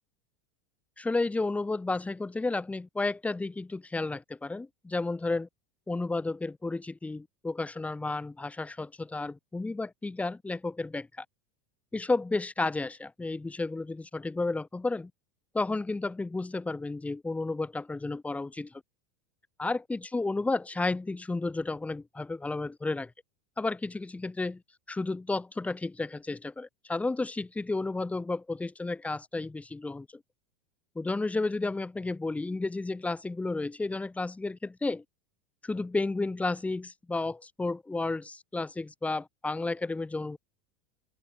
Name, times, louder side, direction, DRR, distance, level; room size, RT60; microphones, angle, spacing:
voice 1, 1.0-5.5 5.9-11.2 11.9-15.1 15.5-18.8 19.6-23.1 23.6-24.6 24.9-30.1 30.9-35.0 35.6-40.4, left 3 dB, 10° left, 4.7 m, -32 dB
open air
supercardioid pair, 135°, 15 cm